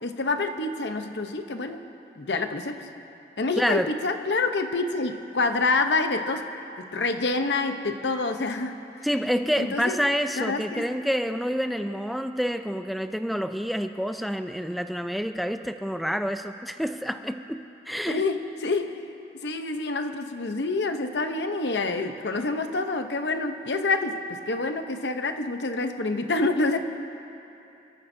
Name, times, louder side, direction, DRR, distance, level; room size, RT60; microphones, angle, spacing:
voice 1, 0.0-1.8 2.2-2.9 3.4-6.4 6.8-8.8 9.6-10.0 10.4-10.9 18.1-19.1 19.4-26.8, left 3 dB, 85° left, 7 dB, 0.8 m, -27 dB
voice 2, 3.6-3.9 9.0-18.2, equal, ahead, 7 dB, 0.4 m, -28 dB
28.5 x 14.0 x 2.7 m, 2.8 s
head